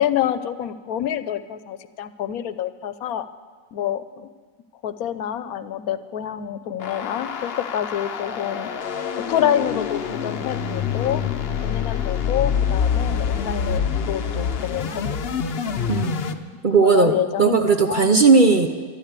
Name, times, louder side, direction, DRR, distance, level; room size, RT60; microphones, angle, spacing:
voice 1, 0.0-3.3 3.7-4.3 4.8-8.7 9.3-11.2 11.6-15.0 16.8-18.1, left 10 dB, 80° left, 13 dB, 1.1 m, -27 dB
sound 1, 6.8-16.3, left 7 dB, 50° left, 0.8 m, -26 dB
voice 2, 15.9-16.4 16.6-18.7, right 4 dB, 45° right, 6 dB, 0.7 m, -17 dB
12.5 x 12.0 x 8.2 m, 1.5 s
omnidirectional pair, 1.5 m